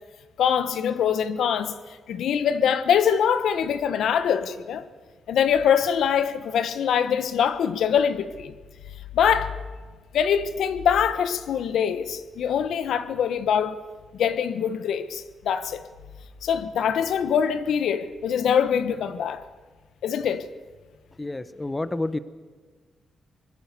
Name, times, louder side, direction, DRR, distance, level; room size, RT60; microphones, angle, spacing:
voice 1, 0.4-1.7 2.1-4.8 5.3-8.5 9.1-9.5 10.1-13.8 14.1-15.8 16.4-19.4 20.0-20.4, left 8 dB, 80° left, 1.2 m, -23 dB
voice 2, 21.2-22.2, left 2 dB, 15° left, 0.8 m, -29 dB
24.0 x 20.5 x 6.9 m
cardioid pair, 135°, 0 cm